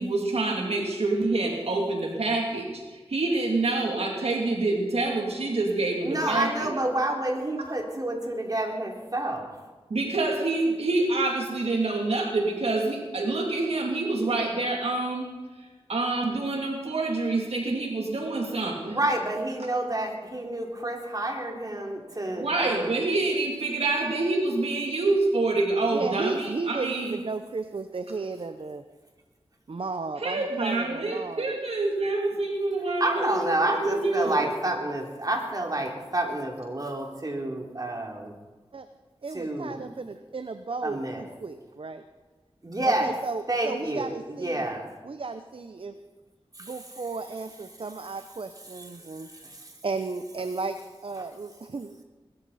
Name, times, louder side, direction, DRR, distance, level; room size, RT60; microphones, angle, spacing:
voice 1, 0.0-6.7 9.9-15.3 15.6-19.0 22.4-27.2 30.2-34.5, right 2 dB, 85° right, 0 dB, 2.9 m, -27 dB
voice 2, 6.0-9.5 18.8-22.9 33.0-38.3 39.3-39.9 40.8-41.2 42.6-43.1 43.5-44.1 44.4-44.9 46.6-46.7 49.3-49.7, right 1 dB, 40° right, 1 dB, 3.1 m, -29 dB
voice 3, 25.9-28.8 29.7-31.6 38.7-38.9 39.2-42.0 42.8-44.6 45.0-45.9 46.6-49.3 49.8-52.0, right 4 dB, 60° right, 9 dB, 0.7 m, -34 dB
21.0 x 13.0 x 4.2 m, 1.3 s
cardioid pair, 45°, 10 cm